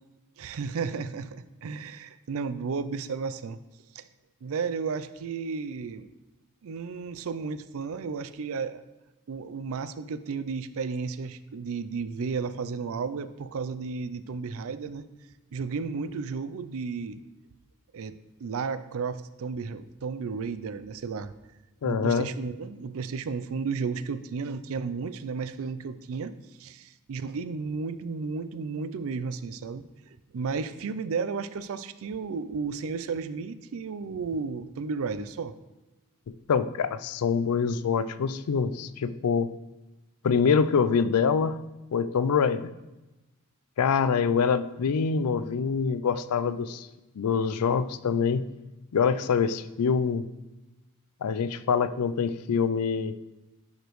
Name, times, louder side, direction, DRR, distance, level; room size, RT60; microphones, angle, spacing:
voice 1, 0.4-3.6 3.9-4.0 4.4-6.1 6.6-8.8 9.3-15.0 15.5-17.2 17.9-21.3 21.8-26.3 26.6-29.8 30.3-35.5, right 5 dB, 65° right, 13 dB, 0.4 m, -33 dB
voice 2, 21.8-22.3 36.3-39.5 40.2-41.6 41.9-42.7 43.8-46.9 47.2-48.5 48.9-50.3 51.2-53.2, left 6 dB, 80° left, 13 dB, 0.4 m, -25 dB
10.5 x 5.0 x 3.1 m, 1.0 s
head